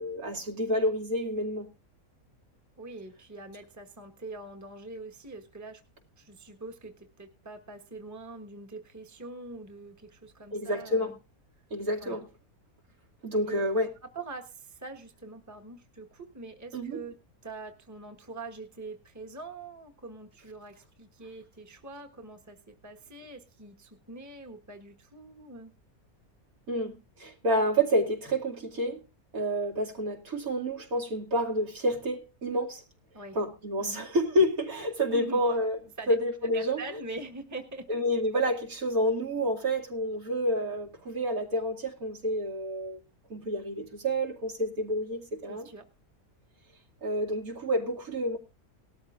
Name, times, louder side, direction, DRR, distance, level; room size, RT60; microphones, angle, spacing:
voice 1, 0.0-1.7 10.5-11.2 11.7-12.3 13.2-13.9 16.7-17.0 26.7-29.0 29.3-32.8 33.3-35.8 36.1-36.8 37.9-43.0 43.3-45.7 47.0-48.4, equal, 75° right, 2.8 m, -29 dB
voice 2, 2.8-5.8 6.2-11.2 12.0-12.2 13.5-13.6 14.1-17.1 17.4-22.6 22.8-25.7 33.1-33.4 33.8-34.1 35.1-35.4 36.0-36.1 36.5-37.8 45.5-45.8, right 3 dB, 10° right, 1.3 m, -43 dB
19.0 x 13.0 x 2.5 m
omnidirectional pair, 1.5 m